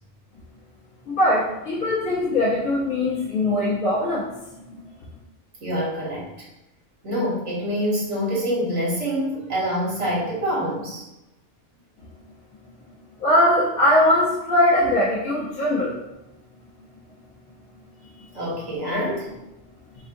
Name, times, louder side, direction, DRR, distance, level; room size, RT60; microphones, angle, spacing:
voice 1, 1.1-4.3 4.7-4.8 13.2-15.9 18.2-18.3, left 1 dB, 80° left, -7 dB, 1.3 m, -21 dB
voice 2, 5.6-6.5 7.0-11.0 18.3-19.3, equal, 60° right, -5 dB, 1.6 m, -26 dB
4.3 x 3.6 x 2.6 m, 0.92 s
omnidirectional pair, 1.4 m